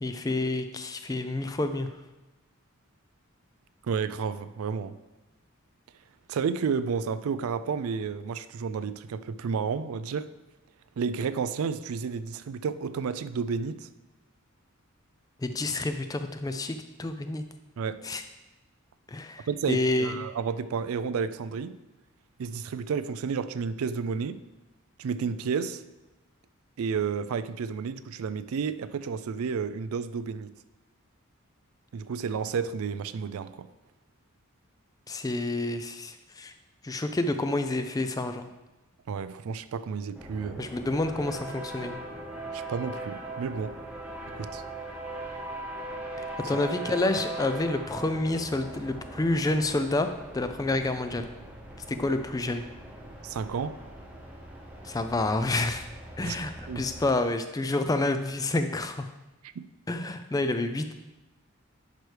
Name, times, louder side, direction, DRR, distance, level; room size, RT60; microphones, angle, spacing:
voice 1, 0.0-1.9 15.4-17.4 18.0-18.2 19.1-20.2 35.1-36.5 36.8-38.4 40.6-42.0 46.5-50.1 50.3-51.3 51.9-52.6 54.8-55.9 56.2-59.1 59.9-60.9, left 2 dB, 15° left, 8 dB, 0.4 m, -28 dB
voice 2, 3.8-5.0 6.3-10.3 11.0-13.9 17.8-18.0 19.5-21.8 22.4-24.4 25.0-25.8 26.8-30.5 31.9-33.7 39.1-40.7 42.5-43.8 44.3-44.6 53.2-53.8 56.2-56.4 56.7-56.9, right 6 dB, 80° right, 13 dB, 0.4 m, -31 dB
sound 1, 40.1-57.1, right 1 dB, 5° right, 0.8 m, -40 dB
10.5 x 4.8 x 3.3 m, 1.1 s
head